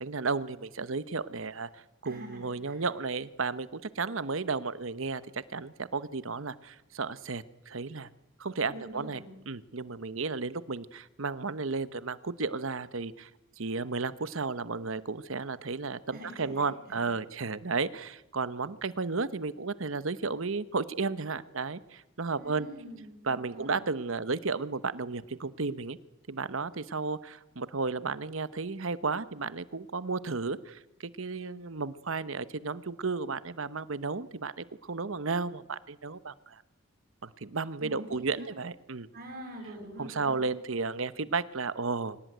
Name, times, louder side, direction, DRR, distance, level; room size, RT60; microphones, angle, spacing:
voice 1, 0.0-8.1 8.4-13.3 13.6-22.7 23.2-26.0 26.3-36.6 37.2-39.1 40.0-42.2, right 4 dB, 70° right, 15 dB, 1.0 m, -33 dB
voice 2, 2.0-2.8 8.7-9.3 16.1-17.0 22.4-23.8 37.8-38.5 39.1-40.4, right 1 dB, 45° right, 0 dB, 7.0 m, -45 dB
24.5 x 18.0 x 9.4 m, 0.96 s
head